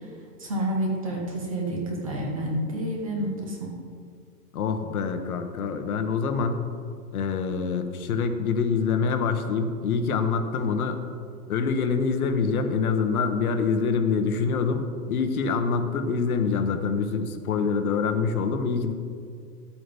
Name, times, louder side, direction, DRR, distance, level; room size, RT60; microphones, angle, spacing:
voice 1, 0.4-3.8, right 1 dB, 20° right, 0 dB, 0.6 m, -29 dB
voice 2, 4.5-6.6 7.1-11.0 11.5-18.9, left 5 dB, 60° left, 7 dB, 1.0 m, -25 dB
12.0 x 8.6 x 3.4 m, 2.3 s
supercardioid pair, 180°, 49 cm